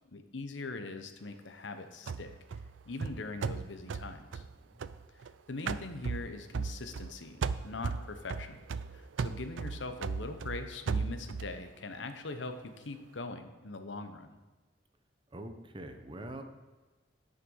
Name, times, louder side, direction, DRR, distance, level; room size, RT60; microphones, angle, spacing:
voice 1, 0.1-2.3 2.9-4.4 5.5-8.6 8.9-14.4, left 3 dB, 80° left, 8 dB, 0.9 m, -42 dB
sound 1, 2.1-5.3 5.7-7.1 7.4-11.6, right 5 dB, 85° right, 0.4 m, -36 dB
voice 2, 15.3-16.4, right 1 dB, 25° right, 7 dB, 0.9 m, -44 dB
10.5 x 6.6 x 5.5 m, 1.2 s
head